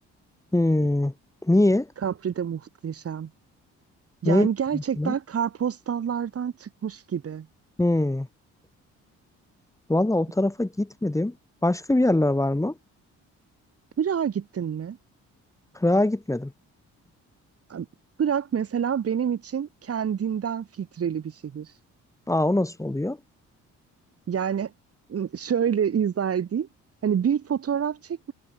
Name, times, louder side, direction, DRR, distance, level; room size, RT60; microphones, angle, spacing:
voice 1, 0.5-1.1 1.4-1.9 4.2-4.5 4.7-5.1 7.8-8.3 9.9-11.3 11.6-12.7 15.7-16.5 22.3-23.2, left 1 dB, 10° left, 3.0 m, -22 dB
voice 2, 2.0-3.3 4.2-7.5 14.0-15.0 17.7-17.9 18.2-21.7 24.3-24.7 25.1-26.7 27.0-28.3, right 8 dB, 50° right, 3.0 m, -27 dB
cardioid pair, 90°, 30 cm